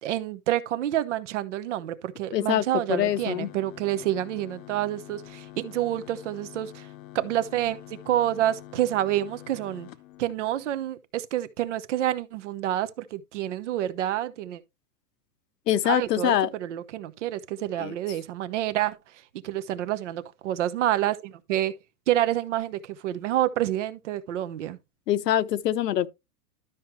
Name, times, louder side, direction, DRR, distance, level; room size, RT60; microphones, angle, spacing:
voice 1, 0.0-6.9 7.1-9.9 10.2-14.6 15.8-19.0 19.4-21.7 22.1-24.8, right 13 dB, 50° right, 1.1 m, -28 dB
voice 2, 2.3-3.5 15.7-16.5 17.8-17.9 25.1-26.1, left 11 dB, 80° left, 1.1 m, -24 dB
sound 1, 2.9-10.9, left 15 dB, 55° left, 1.0 m, -46 dB
12.5 x 6.1 x 3.2 m
supercardioid pair, 170°, 48 cm